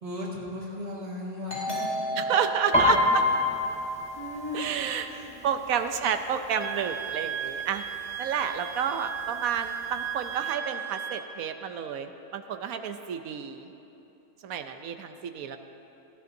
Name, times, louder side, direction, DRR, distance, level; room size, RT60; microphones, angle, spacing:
voice 1, 0.0-1.7 2.1-2.5 4.1-4.7 5.1-5.4, left 1 dB, 40° right, -5 dB, 2.2 m, -37 dB
Doorbell, 1.5-4.8, right 1 dB, 35° left, 2.8 m, -35 dB
voice 2, 2.2-3.2 4.5-5.1 5.4-7.8 8.2-13.7 14.4-15.6, right 7 dB, 70° right, 8 dB, 1.0 m, -30 dB
Piano, 2.7-6.4 6.7-7.1 7.5-8.1 8.7-8.8 9.0-10.1 10.4-10.5, left 2 dB, 5° left, 1.0 m, -27 dB
Wind instrument woodwind instrument, 6.6-11.3, right 9 dB, 85° right, 0.6 m, -36 dB
18.5 x 13.5 x 2.6 m, 2.9 s
omnidirectional pair, 1.7 m